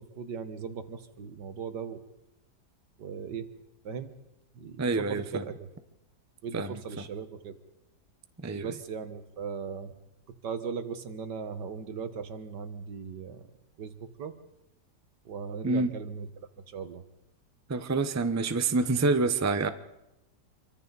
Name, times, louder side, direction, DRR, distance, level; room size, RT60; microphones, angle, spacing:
voice 1, 0.0-2.0 3.0-3.5 3.9-4.1 4.6-5.5 6.4-7.5 8.5-9.9 10.4-13.4 13.8-14.3 15.3-16.3 16.7-17.0, right 6 dB, 80° right, 10 dB, 1.9 m, -38 dB
voice 2, 4.8-5.5 6.5-7.1 8.4-8.7 15.6-15.9 17.7-19.7, right 3 dB, 15° right, 9 dB, 0.6 m, -27 dB
27.0 x 24.5 x 4.1 m, 0.91 s
omnidirectional pair, 1.8 m